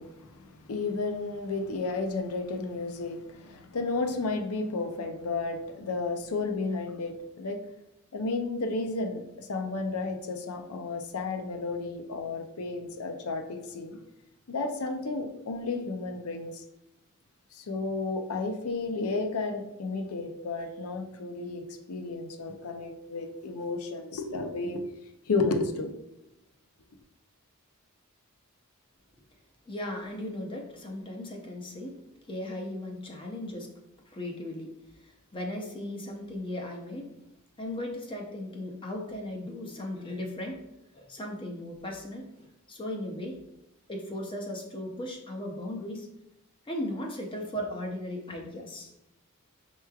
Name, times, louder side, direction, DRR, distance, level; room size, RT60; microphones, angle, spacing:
voice 1, 0.0-7.6 8.1-14.0 14.5-16.6 17.5-24.8 25.3-25.9, left 3 dB, 85° left, 5 dB, 0.5 m, -32 dB
voice 2, 29.7-32.0 32.2-33.7 34.1-37.1 37.6-40.6 40.9-43.4 43.9-46.1 46.6-48.9, left 1 dB, 25° left, 1 dB, 0.5 m, -37 dB
5.6 x 3.0 x 2.3 m, 0.88 s
head